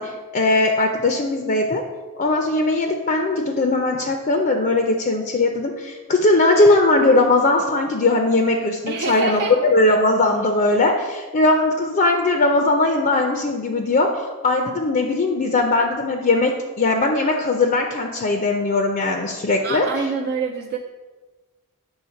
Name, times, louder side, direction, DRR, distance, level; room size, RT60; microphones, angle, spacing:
voice 1, 0.0-1.8 2.2-14.1 14.4-19.9, left 2 dB, 40° left, 4 dB, 0.5 m, -19 dB
voice 2, 8.9-9.5 9.9-10.0 19.6-20.8, right 5 dB, 45° right, 0 dB, 0.4 m, -26 dB
7.2 x 3.3 x 5.6 m, 1.3 s
head